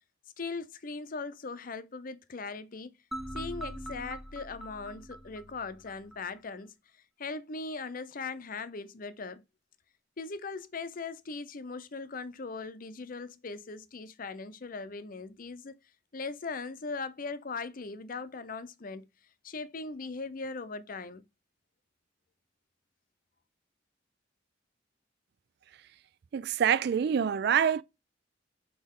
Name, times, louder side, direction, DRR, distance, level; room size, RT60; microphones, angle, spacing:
voice 1, 0.4-3.0 3.3-6.7 7.2-9.4 10.2-15.7 16.1-19.1 19.4-21.2, left 4 dB, 50° left, 0.6 m, -39 dB
sound 1, 3.1-6.2, equal, ahead, 0.5 m, -42 dB
voice 2, 26.3-27.8, right 8 dB, 60° right, 0.3 m, -26 dB
6.5 x 4.2 x 3.6 m
head